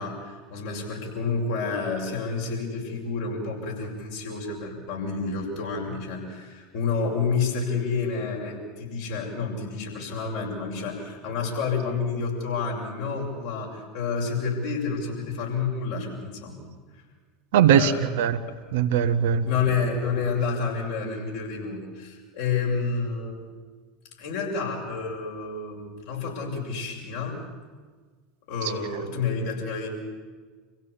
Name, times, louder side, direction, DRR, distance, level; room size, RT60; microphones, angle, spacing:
voice 1, 0.0-16.7 17.7-18.0 18.5-18.6 19.4-23.4 24.2-27.4 28.5-29.9, left 5 dB, 65° left, 6.9 m, -29 dB
voice 2, 17.5-18.4 18.7-19.4 28.6-28.7, right 8 dB, 65° right, 1.3 m, -20 dB
26.5 x 16.0 x 8.4 m
figure-of-eight pair, 75°, 0 cm